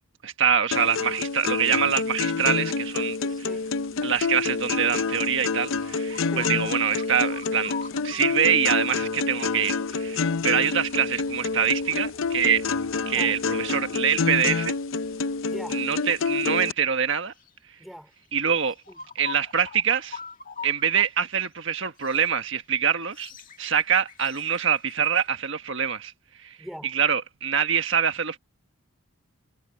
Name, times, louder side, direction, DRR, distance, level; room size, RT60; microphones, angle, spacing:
voice 1, 0.2-3.2 4.0-7.7 8.0-12.6 13.1-14.7 15.7-17.3 18.3-18.7 19.1-20.2 20.6-23.3 23.6-26.1 26.4-26.6 26.8-28.4, right 8 dB, 60° right, 1.5 m, -25 dB
sound 1, 0.7-16.7, left 4 dB, 65° left, 0.6 m, -28 dB
voice 2, 3.2-3.7 6.2-6.5 13.1-13.4 15.5-15.8 17.8-18.1 18.9-19.0 26.6-26.9, equal, ahead, 2.9 m, -41 dB
sound 2, 5.6-8.4 9.7-9.9 10.2-12.8 13.1-13.2 13.7-14.4 15.0-15.1 15.9-16.1 17.3-17.5 18.3-18.4 18.6-21.1 21.4-21.5 22.0-22.4 22.9-25.3, left 5 dB, 40° left, 2.2 m, -44 dB
head